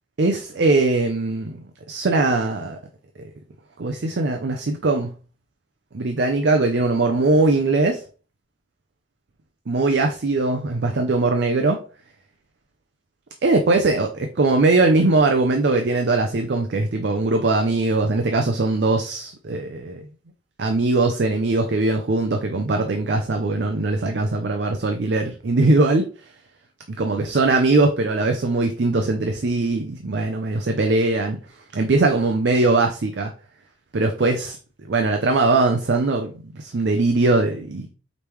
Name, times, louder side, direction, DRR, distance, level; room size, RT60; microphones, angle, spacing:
voice 1, 0.2-2.8 3.8-5.1 5.9-8.0 9.7-11.8 13.4-20.1 20.6-26.1 26.9-31.4 31.7-33.3 33.9-34.6 34.9-37.9, right 2 dB, 65° right, 0.5 m, -21 dB
5.1 x 3.3 x 3.0 m
head